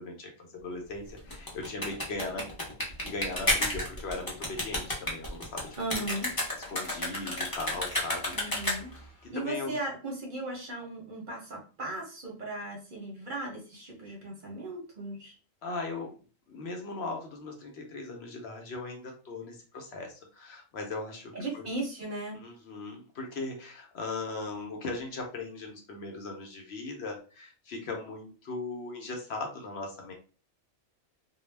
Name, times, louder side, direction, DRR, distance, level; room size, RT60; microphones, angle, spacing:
voice 1, 0.0-2.5 3.0-5.7 6.7-8.4 9.2-9.8 15.6-16.1 16.5-21.7 22.3-30.1, left 3 dB, 60° left, 2 dB, 0.8 m, -38 dB
sound 1, 1.2-9.1, left 1 dB, 20° left, 0.6 m, -31 dB
voice 2, 5.8-6.3 8.3-8.9 9.3-15.3 21.3-22.4, right 2 dB, 50° right, -1 dB, 0.7 m, -37 dB
2.3 x 2.0 x 3.1 m, 0.37 s
omnidirectional pair, 1.3 m